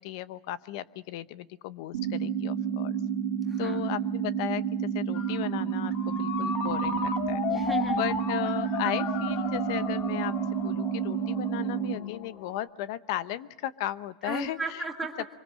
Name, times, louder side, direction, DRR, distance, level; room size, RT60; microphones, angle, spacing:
voice 1, 0.0-3.0 3.6-4.6 4.9-7.4 8.0-10.3 10.6-14.6, left 13 dB, 55° left, 15 dB, 0.9 m, -35 dB
sound 1, 1.9-11.9, right 8 dB, 75° right, 1.6 m, -30 dB
voice 2, 3.4-3.8 7.5-8.1 14.2-15.3, right 3 dB, 5° right, -1 dB, 1.7 m, -34 dB
Ringtone, 5.1-12.6, left 6 dB, 35° left, 1.8 m, -35 dB
25.0 x 23.5 x 6.3 m, 1.1 s
supercardioid pair, 165°, 3 cm